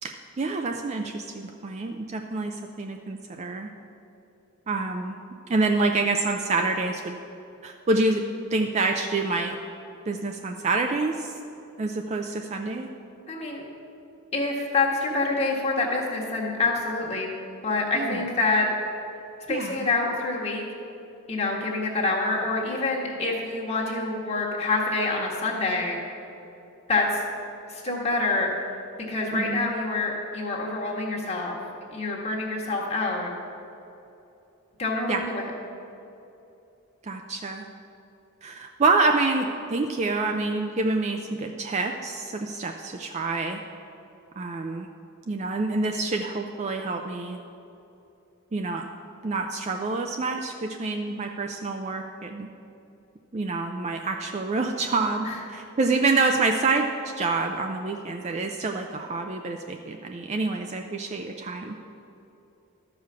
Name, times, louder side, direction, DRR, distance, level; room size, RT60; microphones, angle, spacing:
voice 1, 0.0-3.7 4.7-5.2 5.5-7.1 7.6-8.2 8.5-9.6 10.1-11.3 11.8-12.9 17.9-18.2 19.5-19.9 29.3-29.7 35.1-35.2 37.0-37.7 38.4-43.6 44.4-44.9 45.3-47.4 48.5-48.9 49.2-52.5 53.3-56.9 57.2-61.8, right 3 dB, 30° right, 4 dB, 0.4 m, -27 dB
voice 2, 13.3-13.6 14.3-17.3 17.6-18.7 19.5-20.6 21.3-26.0 26.9-27.2 27.7-28.5 29.0-31.6 31.9-33.3 34.8-35.5 55.2-55.3, left 3 dB, 30° left, -3 dB, 1.4 m, -26 dB
13.0 x 4.9 x 6.8 m, 2.8 s
head